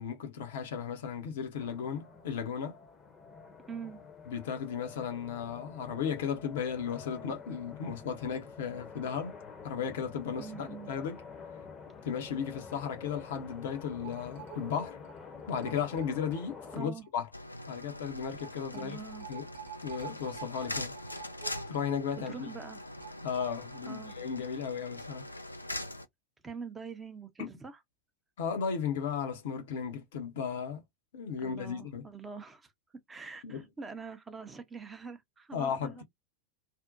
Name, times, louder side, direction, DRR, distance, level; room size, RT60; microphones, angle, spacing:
voice 1, 0.0-2.8 4.3-9.4 9.6-11.2 12.0-15.0 15.5-17.3 17.7-19.0 19.3-19.5 19.8-20.9 21.7-22.5 23.2-25.2 27.4-27.5 28.4-30.8 31.1-32.1 33.4-33.7 35.5-36.0, left 7 dB, 55° left, 0.7 m, -35 dB
sound 1, 1.6-16.8, left 5 dB, 25° left, 0.7 m, -48 dB
voice 2, 3.7-4.0 10.4-10.9 16.7-17.0 18.7-19.3 22.3-22.8 23.8-24.1 26.4-27.8 31.4-32.7 33.1-36.0, right 5 dB, 15° right, 0.6 m, -44 dB
sound 2, 14.0-16.8 17.0-17.1 17.4-17.5 18.4-24.2 24.4-24.5 24.8-24.9, right 12 dB, 55° right, 0.6 m, -48 dB
sound 3, 17.3-26.1, left 1 dB, 85° left, 0.3 m, -42 dB
2.5 x 2.1 x 2.5 m
figure-of-eight pair, 90°, 0 cm